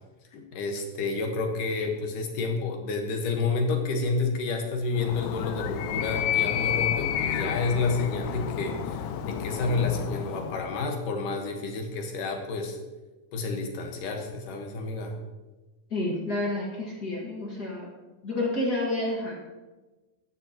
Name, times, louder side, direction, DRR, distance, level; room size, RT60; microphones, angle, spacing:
voice 1, 0.3-12.8 13.3-15.1, left 3 dB, 70° left, 3 dB, 2.9 m, -30 dB
Animal, 4.9-10.8, left 9 dB, 85° left, 1.6 m, -30 dB
voice 2, 15.9-17.9 18.2-19.4, left 1 dB, 35° left, -3 dB, 1.8 m, -29 dB
15.5 x 10.5 x 3.0 m, 1.2 s
omnidirectional pair, 4.0 m